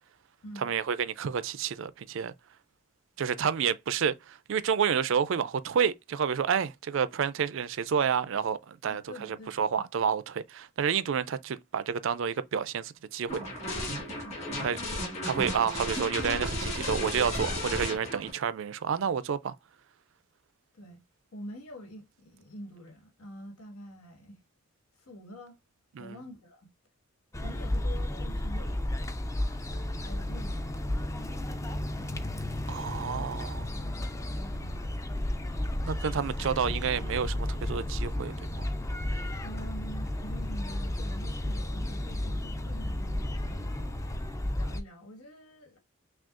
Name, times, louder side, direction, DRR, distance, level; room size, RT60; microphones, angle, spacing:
voice 1, 0.6-2.3 3.2-13.4 14.6-14.8 15.2-19.6 26.0-26.2 32.7-33.7 35.9-38.7, right 7 dB, 60° right, 0.4 m, -29 dB
voice 2, 8.8-9.9 14.7-15.0 20.7-21.0 21.3-24.4 25.0-25.6 26.0-26.7 27.4-28.9 29.3-30.9 33.7-34.0 34.3-35.1 39.4-43.9 44.5-45.8, equal, 90° left, 1.7 m, -47 dB
sound 1, 13.3-18.3, left 1 dB, 30° left, 1.9 m, -34 dB
sound 2, 27.3-44.8, left 1 dB, 15° left, 0.3 m, -33 dB
6.0 x 2.3 x 2.5 m
head